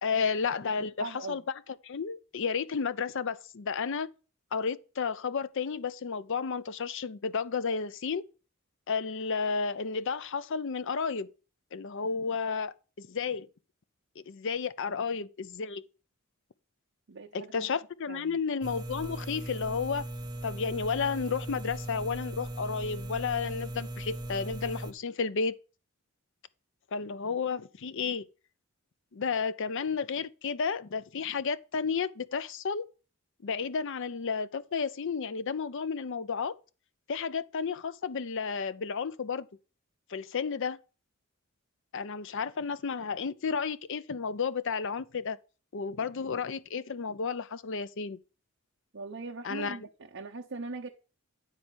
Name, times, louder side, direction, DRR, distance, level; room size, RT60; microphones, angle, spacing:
voice 1, 0.0-1.4 1.8-4.1 4.5-8.2 8.9-11.3 11.7-13.5 14.3-15.9 17.3-20.1 20.4-25.6 26.9-28.3 29.1-32.9 33.4-36.6 37.1-39.5 40.1-40.8 41.9-45.4 45.7-48.2 49.4-49.8, left 5 dB, 60° left, 0.6 m, -32 dB
voice 2, 0.7-1.4 14.9-15.2 17.1-17.7 18.1-18.4 48.9-50.9, right 3 dB, 60° right, 0.9 m, -41 dB
sound 1, 18.6-24.9, right 1 dB, 20° right, 0.9 m, -38 dB
9.5 x 4.2 x 6.1 m
head